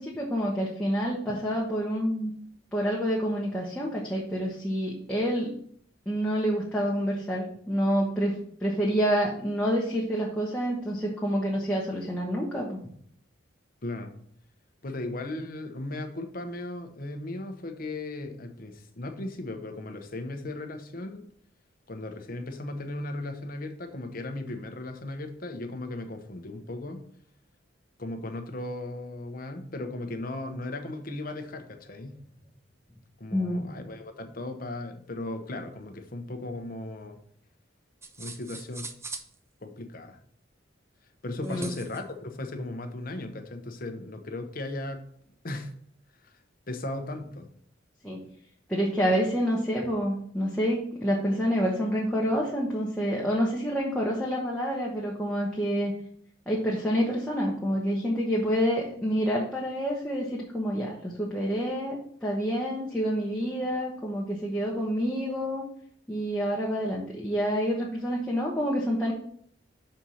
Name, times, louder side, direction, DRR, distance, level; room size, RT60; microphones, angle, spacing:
voice 1, 0.0-2.3 2.7-5.5 6.1-12.8 33.3-33.7 41.4-41.7 48.0-48.2 48.7-55.9 56.5-65.6 66.1-69.1, equal, 5° left, 1.1 m, -28 dB
voice 2, 13.8-14.1 14.8-21.3 21.9-27.0 28.0-32.2 33.2-37.2 38.2-38.9 39.6-40.2 41.2-45.1 45.4-45.7 46.2-46.3 46.7-47.5, left 2 dB, 50° left, 0.9 m, -37 dB
sound 1, 38.0-39.3 41.4-42.0, right 3 dB, 15° right, 0.5 m, -41 dB
6.3 x 4.4 x 5.6 m
head